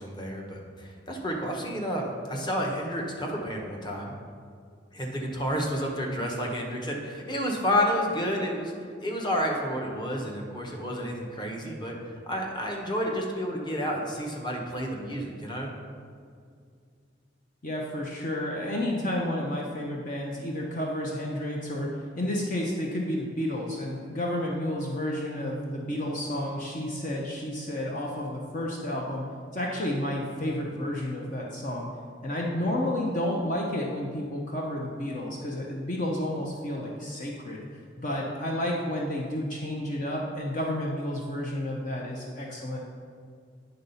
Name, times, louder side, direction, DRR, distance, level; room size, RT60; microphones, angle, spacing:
voice 1, 0.0-4.1 4.9-8.7 9.0-12.0 12.3-15.7, equal, 25° left, 0 dB, 1.0 m, -30 dB
voice 2, 17.6-29.2 29.5-31.9 32.2-37.7 38.0-42.8, left 1 dB, 45° left, -2 dB, 0.8 m, -31 dB
9.6 x 3.9 x 5.5 m, 2.2 s
head